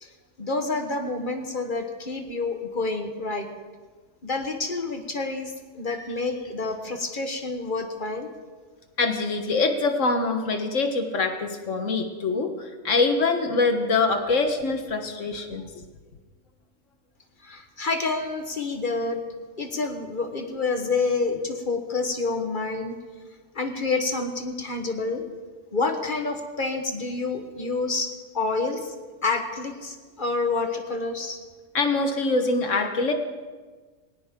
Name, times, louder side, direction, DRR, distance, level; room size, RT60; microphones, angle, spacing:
voice 1, 0.4-3.5 4.2-8.3 17.4-19.2 19.6-23.0 23.5-25.2 25.7-28.9 29.2-31.4, left 3 dB, 40° left, 5 dB, 1.5 m, -28 dB
voice 2, 9.0-15.7 31.7-33.1, left 3 dB, 70° left, 6 dB, 1.7 m, -24 dB
19.0 x 19.0 x 3.8 m, 1.4 s
omnidirectional pair, 1.3 m